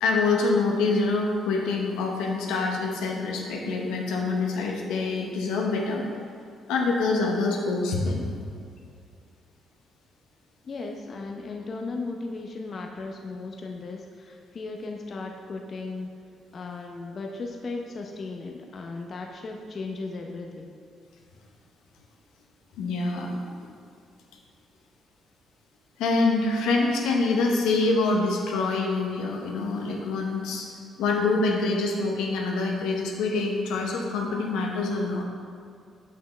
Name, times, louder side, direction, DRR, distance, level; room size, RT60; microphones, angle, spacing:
voice 1, 0.0-6.1 6.7-8.3 22.8-23.4 26.0-30.7 31.0-35.2, left 3 dB, 90° left, 0 dB, 0.9 m, -25 dB
voice 2, 10.6-16.1 16.5-20.7, left 3 dB, 50° left, 1 dB, 0.6 m, -36 dB
7.5 x 5.9 x 3.3 m, 2.3 s
cardioid pair, 75°, 0 cm